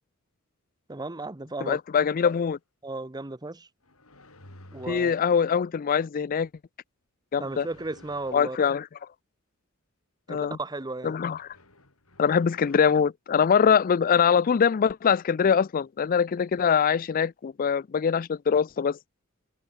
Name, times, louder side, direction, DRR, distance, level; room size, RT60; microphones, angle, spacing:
voice 1, 0.9-1.8 2.8-3.7 4.7-5.1 7.4-8.7 10.3-11.1, right 2 dB, 20° right, 0.9 m, -35 dB
voice 2, 1.7-2.6 4.9-6.5 7.3-7.7 8.3-8.9 10.3-10.6 11.0-11.4 12.2-19.0, left 7 dB, 40° left, 0.4 m, -23 dB
sound 1, 2.2-2.5 3.8-5.5 7.3-8.6 11.2-13.0, left 2 dB, 80° left, 7.5 m, -53 dB
head